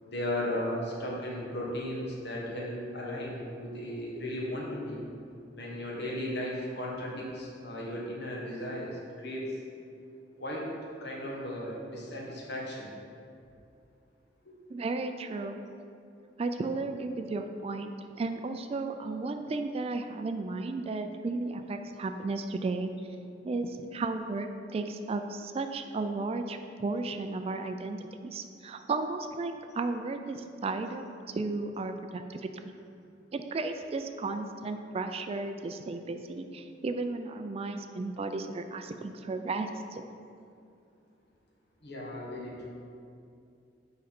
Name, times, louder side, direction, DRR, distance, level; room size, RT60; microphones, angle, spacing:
voice 1, 0.0-5.0 5.6-9.4 10.4-10.6 11.0-12.9 41.8-42.7, left 1 dB, 65° left, -4 dB, 1.6 m, -36 dB
voice 2, 14.7-15.6 16.4-17.9 18.2-22.9 23.4-31.0 31.3-32.7 33.3-40.0, right 3 dB, 35° right, 7 dB, 0.3 m, -34 dB
7.7 x 5.1 x 4.3 m, 2.6 s
head